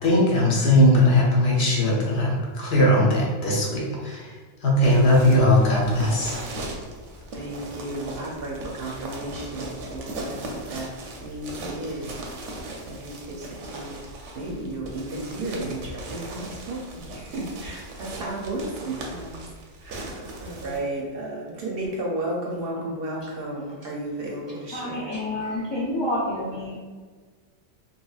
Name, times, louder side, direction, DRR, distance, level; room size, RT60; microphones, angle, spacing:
voice 1, 0.0-4.4 4.6-6.4, left 1 dB, 65° left, -3 dB, 0.9 m, -19 dB
sound 1, 4.8-20.8, right 2 dB, 90° right, 0.9 m, -38 dB
voice 2, 7.3-10.9 11.2-12.2 12.9-14.0 14.3-19.4 19.8-25.1, right 1 dB, 65° right, -2 dB, 0.7 m, -33 dB
voice 3, 24.7-26.8, left 1 dB, 35° left, -7 dB, 0.4 m, -28 dB
3.0 x 2.8 x 2.3 m, 1.5 s
omnidirectional pair, 1.2 m